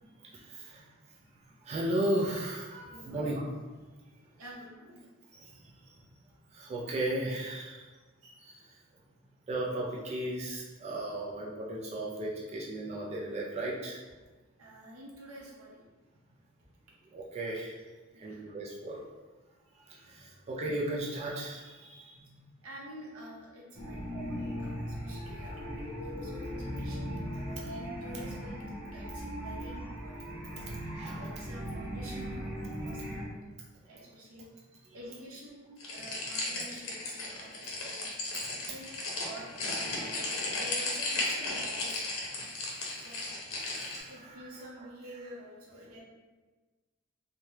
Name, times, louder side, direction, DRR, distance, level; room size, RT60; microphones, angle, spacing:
voice 1, 0.2-0.9 1.6-3.5 5.3-6.0 6.5-7.9 8.2-8.8 9.5-14.0 17.1-17.8 18.2-19.1 19.9-22.5 24.1-24.2 26.5-27.0 27.5-27.8 30.9-31.3 34.0-34.1 38.3-38.7 42.6-43.2 43.6-44.4 44.8-44.9, right 1 dB, 30° right, -4 dB, 0.4 m, -36 dB
voice 2, 2.8-3.4 4.0-4.1 4.4-5.0 14.6-15.8 18.1-18.4 22.6-27.1 27.6-28.6 28.9-32.5 32.8-33.4 33.8-34.5 34.9-38.1 38.7-42.1 43.0-43.2 44.1-46.0, right 1 dB, 85° right, -3 dB, 0.8 m, -49 dB
sound 1, 23.7-33.2, equal, 60° right, 0.9 m, -38 dB
sound 2, 35.8-44.0, left 2 dB, 90° left, 0.7 m, -35 dB
3.2 x 2.1 x 2.8 m, 1.3 s
head